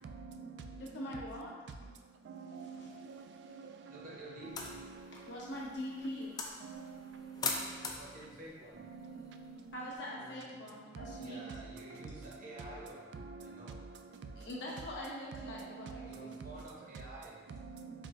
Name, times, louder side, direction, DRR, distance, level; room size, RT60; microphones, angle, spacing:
voice 1, 0.0-1.0 1.8-5.5 6.6-7.9 8.8-9.7 10.5-10.6 10.9-14.5 15.4-16.6 17.5-18.1, right 4 dB, 70° right, 5 dB, 0.3 m, -48 dB
voice 2, 0.8-1.7 2.8-2.9 5.1-6.4 9.7-11.5 14.4-16.4, left 1 dB, 70° left, -4 dB, 0.9 m, -43 dB
voice 3, 3.9-4.7 7.7-8.8 10.2-13.1 13.4-13.8 16.0-17.6, right 1 dB, 50° right, -5 dB, 0.9 m, -51 dB
sound 1, 4.4-10.0, left 4 dB, 20° left, 0.3 m, -43 dB
4.8 x 2.1 x 3.5 m, 1.4 s
head